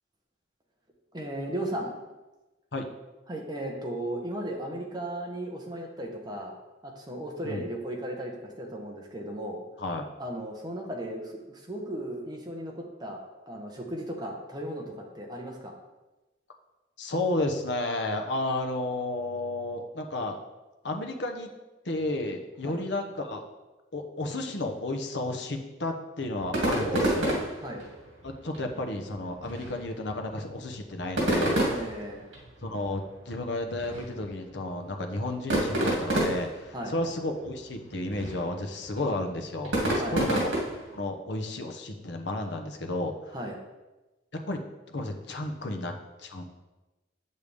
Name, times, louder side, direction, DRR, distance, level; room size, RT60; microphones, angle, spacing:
voice 1, 1.1-1.9 3.3-6.6 6.8-9.6 10.2-13.2 13.5-15.7 22.6-22.8 26.8-27.2 27.6-27.9 31.6-32.2 36.7-36.9 39.9-40.2 43.3-43.6, right 1 dB, 20° right, 0 dB, 1.2 m, -35 dB
voice 2, 17.0-20.4 20.8-21.5 21.8-23.4 23.9-27.3 28.2-31.6 32.6-40.5 40.9-43.1 44.3-44.6 44.9-46.4, left 2 dB, 65° left, 4 dB, 1.0 m, -32 dB
sound 1, 26.4-41.0, right 1 dB, 75° right, 2.4 m, -31 dB
8.1 x 6.7 x 3.5 m, 1.1 s
head